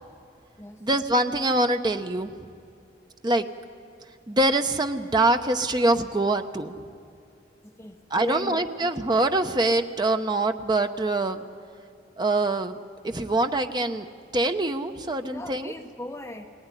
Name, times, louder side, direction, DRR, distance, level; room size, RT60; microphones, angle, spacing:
voice 1, 0.8-2.5 3.2-3.4 4.3-6.7 8.1-11.4 12.2-12.8 13.0-14.1 14.3-15.7, right 2 dB, 25° right, 7 dB, 0.9 m, -24 dB
voice 2, 7.6-8.7 15.2-16.5, left 1 dB, 15° left, 4 dB, 0.9 m, -37 dB
22.5 x 17.5 x 9.9 m, 2.5 s
head